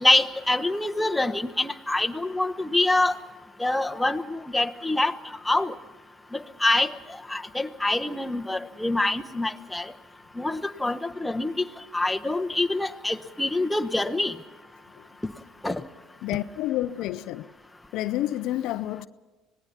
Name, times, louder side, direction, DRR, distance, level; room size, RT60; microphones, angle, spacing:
voice 1, 0.0-3.1 3.6-5.1 5.5-5.7 6.6-6.9 7.3-9.8 10.4-11.5 11.9-14.3 15.6-15.8, left 2 dB, 10° left, 1.1 m, -25 dB
voice 2, 16.2-17.5 17.9-19.1, left 14 dB, 70° left, 0.5 m, -29 dB
25.5 x 18.5 x 5.9 m
hypercardioid pair, 75°, 0 cm